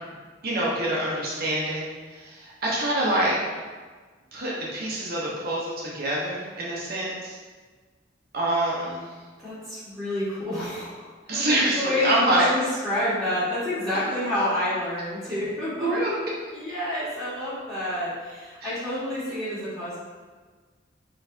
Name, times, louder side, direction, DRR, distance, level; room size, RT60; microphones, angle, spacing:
voice 1, 0.4-3.4 4.3-7.4 8.3-9.0 11.3-12.5 13.9-14.0 15.8-16.1 18.6-18.7, right 1 dB, 55° right, -5 dB, 0.8 m, -26 dB
voice 2, 9.4-15.9 16.5-20.0, left 1 dB, ahead, -11 dB, 1.3 m, -29 dB
4.2 x 3.2 x 2.6 m, 1.4 s
head